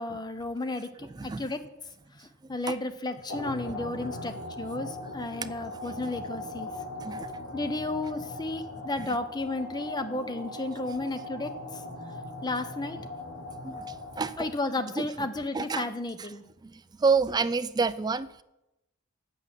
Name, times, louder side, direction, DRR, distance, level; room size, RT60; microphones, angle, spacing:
voice 1, 0.0-0.9 1.2-1.6 2.5-6.7 7.5-11.5 12.4-13.0 14.4-16.4, left 2 dB, 20° left, 9 dB, 0.7 m, -33 dB
voice 2, 1.0-1.4 2.7-2.8 5.4-5.5 5.8-6.1 7.0-7.3 7.6-7.7 9.0-9.2 13.6-13.8 14.2-14.5 15.0-15.3 15.5-15.9 16.2-16.3 16.6-16.7 17.0-18.4, right 4 dB, 20° right, 13 dB, 0.3 m, -29 dB
sound 1, 3.3-14.7, left 2 dB, 55° left, 4.6 m, -40 dB
8.1 x 7.0 x 7.4 m, 0.92 s
head